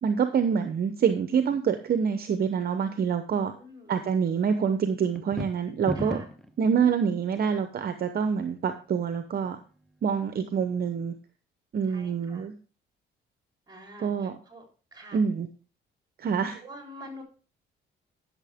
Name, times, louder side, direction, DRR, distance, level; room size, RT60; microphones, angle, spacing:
voice 1, 0.0-3.5 3.9-6.2 6.6-9.6 10.0-11.1 11.7-12.5 14.0-14.3 15.1-15.5 16.2-16.6, right 7 dB, 50° right, 8 dB, 0.8 m, -26 dB
voice 2, 3.5-4.0 6.0-6.3 11.9-12.4 13.7-14.6 14.9-15.2 16.6-17.2, equal, 20° right, 2 dB, 4.0 m, -46 dB
sound 1, 5.1-6.5, equal, ahead, 1.0 m, -33 dB
12.0 x 6.7 x 3.6 m, 0.37 s
cardioid pair, 90°, 20 cm